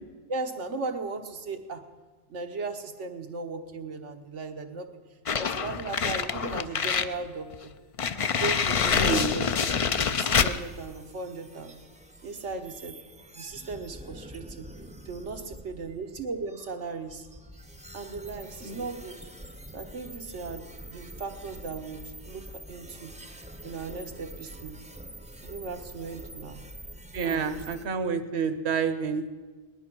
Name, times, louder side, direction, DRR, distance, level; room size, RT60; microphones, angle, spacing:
voice 1, 0.3-1.8 2.3-4.9 5.4-7.7 8.4-9.4 10.1-11.8 12.2-13.0 13.3-14.7 15.1-17.3 17.9-19.2 19.7-23.2 23.6-24.8 25.4-26.6 27.2-27.6, right 3 dB, 90° right, 5 dB, 1.5 m, -37 dB
sound 1, 5.3-7.1 7.5-7.6 8.0-10.6, left 6 dB, 50° left, 0.4 m, -26 dB
voice 2, 8.9-9.3 18.6-18.9 27.1-29.4, right 5 dB, 65° right, 10 dB, 1.2 m, -29 dB
sound 2, 10.3-27.9, right 1 dB, 10° right, 0.6 m, -46 dB
19.0 x 11.5 x 6.1 m, 1.3 s
omnidirectional pair, 1.2 m